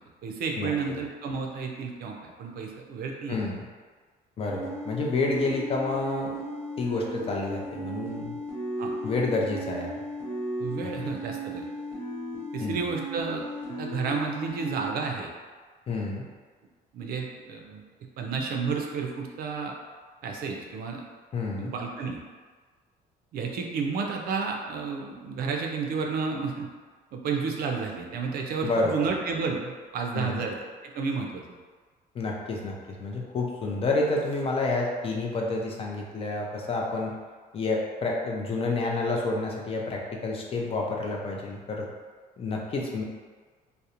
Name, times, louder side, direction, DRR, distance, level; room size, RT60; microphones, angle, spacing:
voice 1, 0.2-3.4 8.8-8.9 10.6-11.7 12.5-13.4 13.8-15.3 16.9-17.8 18.2-19.8 20.2-21.0 21.6-22.2 23.3-26.7 27.1-30.6 30.8-31.4, right 5 dB, 60° right, 1 dB, 0.4 m, -31 dB
voice 2, 3.3-3.6 4.4-6.4 6.8-8.4 9.0-9.9 12.6-12.8 15.9-16.2 21.3-21.7 28.6-29.1 30.1-30.4 32.1-37.1 37.5-41.9 42.4-43.0, left 3 dB, 35° left, -1 dB, 0.4 m, -29 dB
sound 1, 4.5-14.9, equal, 10° left, 0.8 m, -36 dB
2.4 x 2.0 x 2.8 m, 1.5 s
cardioid pair, 110°, 17 cm